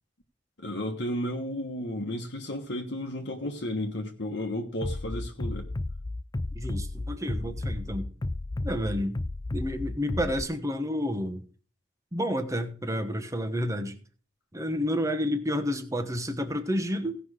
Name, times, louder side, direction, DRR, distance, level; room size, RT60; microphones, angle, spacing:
voice 1, 0.6-5.7, left 1 dB, 60° left, 1.3 m, -33 dB
Bass drum, 4.8-10.4, left 2 dB, 20° left, 0.4 m, -33 dB
voice 2, 6.5-8.1 8.6-9.2 9.5-11.4 12.1-13.9 14.5-17.2, equal, 15° right, 1.2 m, -30 dB
17.0 x 5.8 x 4.9 m
head